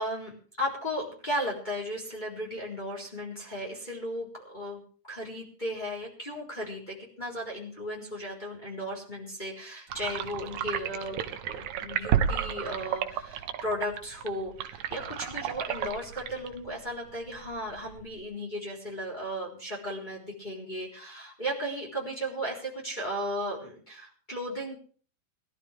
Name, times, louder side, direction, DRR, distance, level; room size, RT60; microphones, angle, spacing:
voice 1, 0.0-24.8, equal, 15° left, -3 dB, 4.0 m, -35 dB
sound 1, 9.9-18.2, right 9 dB, 75° right, 2.3 m, -33 dB
21.5 x 12.5 x 3.4 m, 0.41 s
omnidirectional pair, 3.6 m